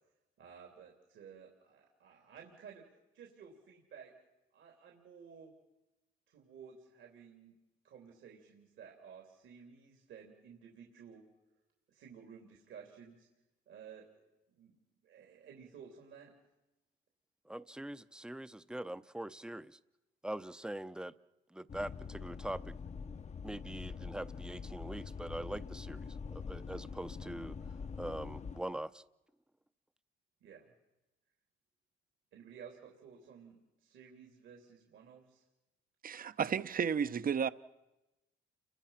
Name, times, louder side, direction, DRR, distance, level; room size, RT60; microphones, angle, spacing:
voice 1, 0.4-2.8 3.1-4.1 4.5-5.5 6.3-7.5 7.8-11.2 11.9-13.3 13.7-16.3 30.4-30.7 32.3-35.4, right 7 dB, 75° right, 3.5 m, -54 dB
voice 2, 17.5-19.8 20.2-21.1 21.5-22.8 23.4-27.6 27.9-29.0, right 1 dB, 5° right, 0.7 m, -43 dB
sound 1, 21.7-28.6, left 5 dB, 35° left, 0.9 m, -44 dB
voice 3, 36.0-37.5, right 7 dB, 45° right, 0.9 m, -32 dB
30.0 x 23.5 x 5.9 m
cardioid pair, 90°, 20 cm